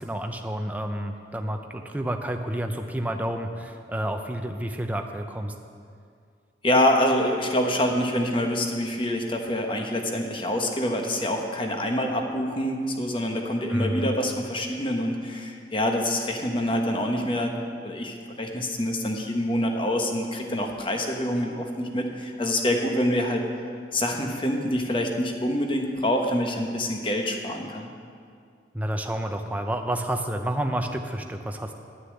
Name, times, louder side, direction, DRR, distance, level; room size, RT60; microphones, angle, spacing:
voice 1, 0.0-5.5 13.7-14.1 28.7-31.7, right 1 dB, 10° right, 4 dB, 0.6 m, -30 dB
voice 2, 6.6-17.5 17.8-23.4 23.9-27.9, left 1 dB, 30° left, 3 dB, 1.1 m, -26 dB
11.0 x 6.7 x 8.6 m, 2.2 s
head